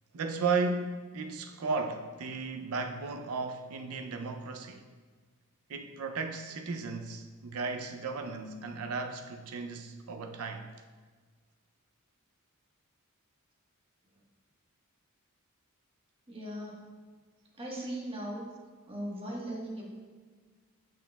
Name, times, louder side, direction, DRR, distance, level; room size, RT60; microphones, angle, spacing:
voice 1, 0.1-4.8 5.7-10.7, right 4 dB, 80° right, 0.5 m, -35 dB
voice 2, 16.3-16.9 17.5-18.4 18.9-19.9, right 1 dB, 25° right, 1.3 m, -38 dB
8.1 x 6.2 x 2.3 m
head